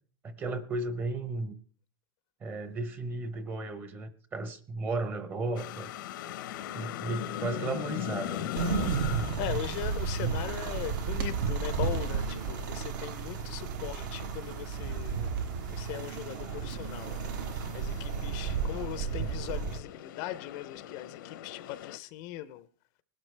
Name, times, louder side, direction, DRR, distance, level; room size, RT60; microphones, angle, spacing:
voice 1, 0.2-1.6 2.4-5.9 6.7-8.5, right 3 dB, 15° right, 0.8 m, -34 dB
sound 1, 5.6-22.0, left 12 dB, 65° left, 0.8 m, -41 dB
sound 2, 8.5-19.8, right 6 dB, 60° right, 1.2 m, -33 dB
voice 2, 9.4-15.3 15.7-17.2 17.7-22.7, left 14 dB, 40° left, 0.6 m, -39 dB
sound 3, 10.6-16.8, right 7 dB, 85° right, 2.0 m, -52 dB
20.0 x 12.0 x 3.3 m
supercardioid pair, 165°, 11 cm